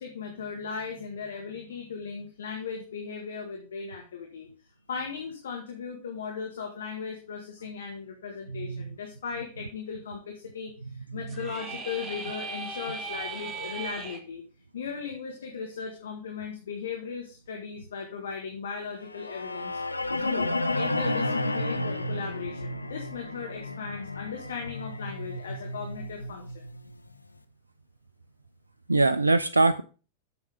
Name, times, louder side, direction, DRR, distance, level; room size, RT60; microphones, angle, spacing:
voice 1, 0.0-4.5 4.9-14.4 14.7-19.8 20.2-26.6, left 6 dB, 65° left, 1.6 m, -37 dB
voice 2, 8.5-8.9 28.9-29.8, right 3 dB, 80° right, 0.4 m, -22 dB
sound 1, 11.3-14.2, right 4 dB, 20° right, 1.6 m, -37 dB
sound 2, 19.1-27.2, left 2 dB, 85° left, 0.6 m, -32 dB
8.1 x 7.0 x 5.0 m
figure-of-eight pair, 90°, 0 cm